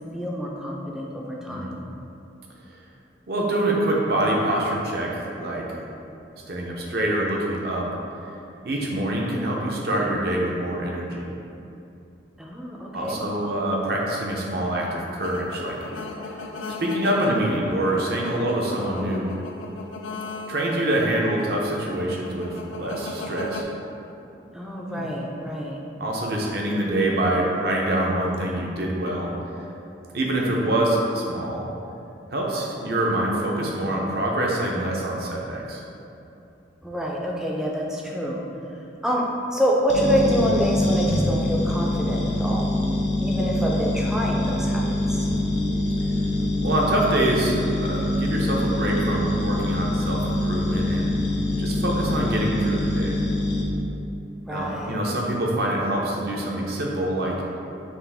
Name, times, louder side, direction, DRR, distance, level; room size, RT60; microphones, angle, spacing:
voice 1, 0.1-1.8 12.4-13.2 24.5-25.8 36.8-38.4 39.0-42.7 43.2-44.8 45.1-45.3 54.5-55.0, equal, 5° right, -3 dB, 0.4 m, -26 dB
voice 2, 1.5-1.8 3.3-5.7 6.5-7.9 8.6-11.3 12.9-15.8 16.7-19.3 20.5-23.6 24.9-25.1 26.0-29.3 30.1-31.7 32.3-35.8 45.2-45.6 46.6-51.1 51.6-53.2 54.5-57.4, right 1 dB, 55° right, -2 dB, 0.6 m, -25 dB
sound 1, 15.2-23.6, left 3 dB, 85° left, 0.3 m, -37 dB
sound 2, 39.9-53.6, left 1 dB, 70° left, 0.8 m, -24 dB
5.7 x 2.4 x 3.4 m, 2.8 s
head